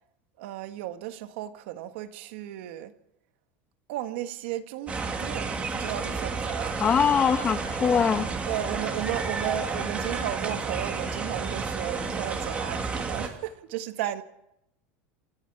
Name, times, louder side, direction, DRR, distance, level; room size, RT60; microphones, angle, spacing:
voice 1, 0.4-2.9 3.9-7.0 8.5-14.2, right 12 dB, 75° right, 1.6 m, -34 dB
sound 1, 4.9-13.3, right 4 dB, 20° right, 2.6 m, -31 dB
voice 2, 6.8-8.3, left 7 dB, 25° left, 1.3 m, -22 dB
28.0 x 11.0 x 8.7 m
supercardioid pair, 155°, 6 cm